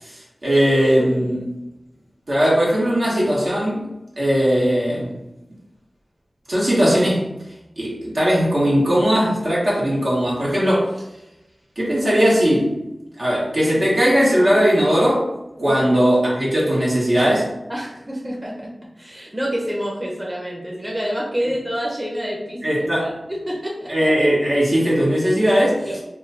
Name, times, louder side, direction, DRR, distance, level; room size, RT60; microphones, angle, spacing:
voice 1, 0.0-1.5 2.3-3.8 4.2-5.1 6.5-7.3 7.8-10.9 11.8-12.7 13.2-15.3 15.6-17.5 22.6-23.1 23.9-25.9, equal, 65° right, -6 dB, 1.4 m, -18 dB
voice 2, 17.7-18.7 19.0-22.6 23.0-23.9 25.8-26.0, equal, 20° right, -4 dB, 0.8 m, -27 dB
3.0 x 2.3 x 4.0 m, 0.92 s
wide cardioid pair, 65°, 0 cm